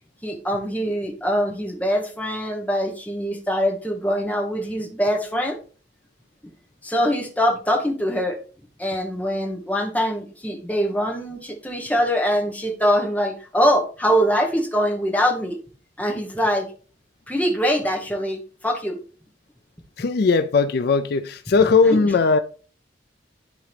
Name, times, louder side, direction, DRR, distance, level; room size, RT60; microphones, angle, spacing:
voice 1, 0.2-5.6 6.8-8.4 8.8-15.6 16.0-16.7 17.3-19.0 21.8-22.1, equal, 10° left, 1.1 m, -23 dB
voice 2, 20.0-22.4, left 4 dB, 55° left, 0.4 m, -18 dB
11.0 x 3.8 x 3.3 m
head